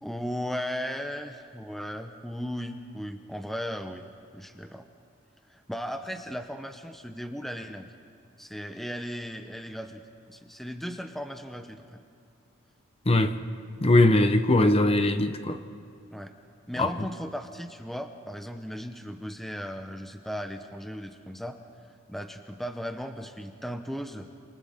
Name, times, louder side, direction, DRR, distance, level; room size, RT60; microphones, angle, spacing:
voice 1, 0.0-4.1 4.3-4.8 5.5-7.9 8.4-10.0 10.3-11.8 16.1-16.3 16.7-21.6 22.1-24.3, equal, ahead, 0.8 m, -36 dB
voice 2, 13.8-15.6 16.8-16.9, left 2 dB, 30° left, 0.9 m, -21 dB
28.0 x 27.0 x 3.7 m
head